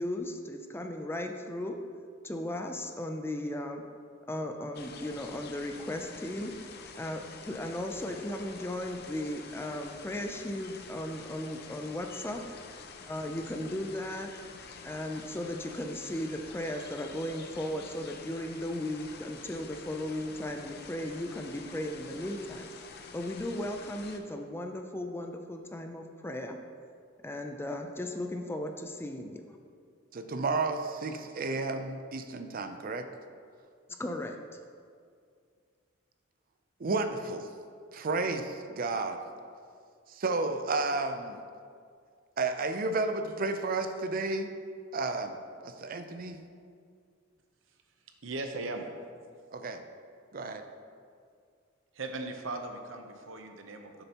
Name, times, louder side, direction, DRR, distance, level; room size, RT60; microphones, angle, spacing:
voice 1, 0.0-1.8 2.2-3.8 4.3-6.5 7.0-12.4 13.1-14.3 14.8-22.7 23.1-26.6 27.2-29.4 34.0-34.6, left 1 dB, 10° left, 4 dB, 0.4 m, -36 dB
sound 1, 4.7-24.2, left 5 dB, 55° left, 0.6 m, -48 dB
voice 2, 30.1-33.1 36.8-37.5 37.9-39.2 40.1-41.4 42.4-44.5 44.9-45.4 45.6-46.4 49.5-49.8 50.3-50.6, right 3 dB, 45° right, 7 dB, 0.5 m, -32 dB
voice 3, 48.2-48.9 51.9-54.0, right 2 dB, 70° right, 5 dB, 0.8 m, -38 dB
11.0 x 6.7 x 2.9 m, 2.2 s
head